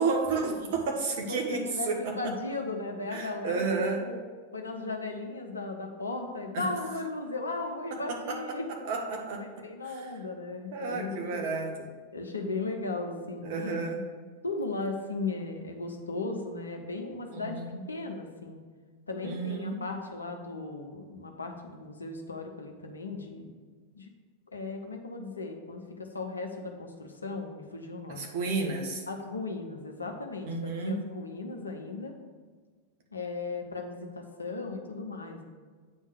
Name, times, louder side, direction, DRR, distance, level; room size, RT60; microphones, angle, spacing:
voice 1, 0.0-2.3 3.1-4.0 6.5-6.7 7.9-9.5 9.8-10.1 10.7-11.7 13.4-14.0 17.3-17.8 19.2-19.8 28.1-29.0 30.5-31.0, right 4 dB, 50° right, 1 dB, 1.3 m, -31 dB
voice 2, 1.3-3.7 4.0-4.2 4.5-8.7 9.4-11.5 12.1-13.8 14.4-17.6 17.9-18.6 19.1-23.5 23.9-24.1 24.5-28.3 29.1-32.1 33.1-35.4, left 3 dB, 75° left, 3 dB, 0.9 m, -36 dB
8.7 x 3.6 x 6.5 m, 1.5 s
figure-of-eight pair, 90°, 0 cm